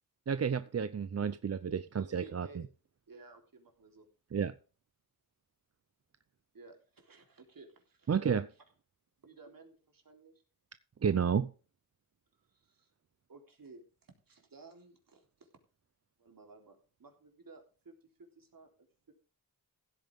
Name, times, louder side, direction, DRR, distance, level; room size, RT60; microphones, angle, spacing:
voice 1, 0.3-2.5 4.3-4.5 8.1-8.4 11.0-11.5, right 7 dB, 40° right, 0.6 m, -31 dB
voice 2, 2.0-2.6 3.1-4.1 6.5-8.5 9.2-10.3 12.5-12.9 13.3-15.5 16.2-17.9 18.3-18.7 19.1-19.2, right 3 dB, 60° right, 3.7 m, -56 dB
16.0 x 9.2 x 3.6 m
wide cardioid pair, 90°, 38 cm